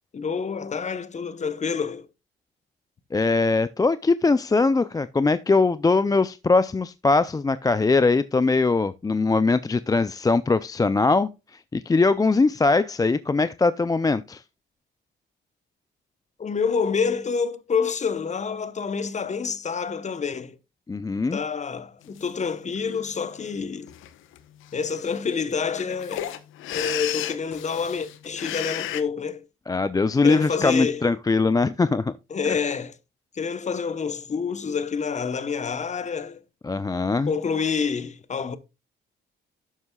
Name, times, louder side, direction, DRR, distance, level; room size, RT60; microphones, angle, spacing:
voice 1, 0.1-2.1 16.4-20.6 21.3-23.9 24.7-26.3 26.7-29.5 30.2-31.0 32.3-33.0 33.3-36.4 37.3-38.6, left 5 dB, 35° left, 1.0 m, -28 dB
voice 2, 3.1-14.4 20.9-21.4 29.7-32.1 36.6-37.3, left 3 dB, 20° left, 0.5 m, -21 dB
sound 1, 22.2-22.3 22.8-23.2 23.9-24.1 24.4-24.5 24.6-29.0, left 12 dB, 90° left, 1.0 m, -33 dB
11.0 x 7.8 x 2.3 m
cardioid pair, 90°, 20 cm